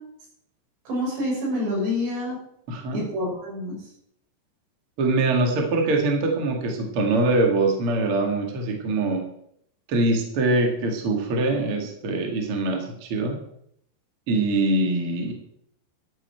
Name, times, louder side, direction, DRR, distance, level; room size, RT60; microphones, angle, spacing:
voice 1, 0.9-2.4 2.9-3.8, left 1 dB, 70° right, -4 dB, 8.8 m, -27 dB
voice 2, 2.7-3.0 5.0-9.2 9.9-13.4 14.3-15.3, right 2 dB, 45° right, 2 dB, 2.1 m, -23 dB
14.0 x 11.5 x 4.6 m, 0.70 s
omnidirectional pair, 5.2 m